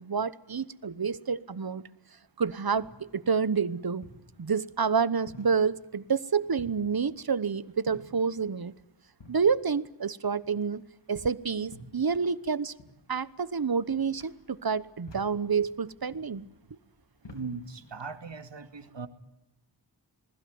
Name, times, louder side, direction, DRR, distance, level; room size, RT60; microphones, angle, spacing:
voice 1, 0.0-1.8 2.4-4.1 4.4-8.7 9.3-10.8 11.1-12.7 13.1-16.5, right 5 dB, 55° right, 17 dB, 1.1 m, -28 dB
sound 1, 2.3-18.2, left 1 dB, 85° left, 4.1 m, -54 dB
voice 2, 17.2-19.1, right 4 dB, 85° right, 8 dB, 2.4 m, -39 dB
27.0 x 21.0 x 9.5 m, 0.91 s
wide cardioid pair, 70°, 42 cm